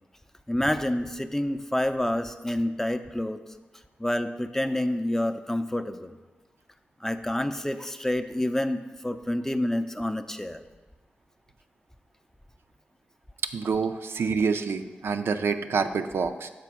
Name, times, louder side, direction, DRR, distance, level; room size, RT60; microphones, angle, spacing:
voice 1, 0.5-3.4 4.0-6.2 7.0-10.6, left 1 dB, 10° left, 9 dB, 0.5 m, -28 dB
voice 2, 13.5-16.5, right 5 dB, 70° right, 8 dB, 0.4 m, -27 dB
6.0 x 4.9 x 4.7 m, 1.2 s
supercardioid pair, 45°, 4 cm